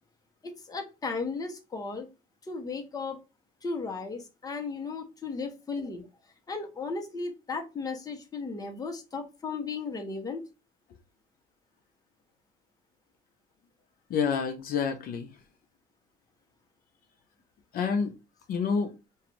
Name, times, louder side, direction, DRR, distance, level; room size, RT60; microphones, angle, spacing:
voice 1, 0.4-2.1 2.4-3.2 3.6-6.1 6.5-10.4, left 4 dB, 20° left, 0.8 m, -35 dB
voice 2, 14.1-15.3 17.7-18.1 18.5-18.9, left 6 dB, 60° left, 0.6 m, -28 dB
2.5 x 2.3 x 3.0 m
cardioid pair, 110°, 17 cm